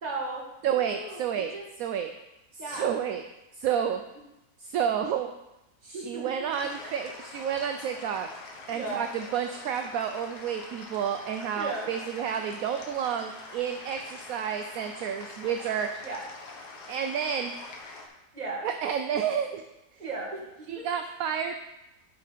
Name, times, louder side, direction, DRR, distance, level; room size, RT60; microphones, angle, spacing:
voice 1, 0.0-0.5 0.7-1.6 2.6-2.9 5.9-6.5 6.8-7.1 8.7-9.0 11.5-12.0 16.0-16.2 18.3-18.7 20.0-20.9, right 2 dB, 25° right, -2 dB, 1.7 m, -36 dB
voice 2, 0.6-1.5 1.8-2.1 2.5-3.2 3.6-4.0 4.6-5.3 5.8-8.3 8.7-15.9 16.9-17.5 18.6-19.6 19.9-20.0 20.7-21.5, right 8 dB, 70° right, 6 dB, 0.9 m, -30 dB
sound 1, 6.5-18.1, left 3 dB, 70° left, 1.7 m, -45 dB
11.0 x 4.1 x 5.0 m, 0.93 s
omnidirectional pair, 1.8 m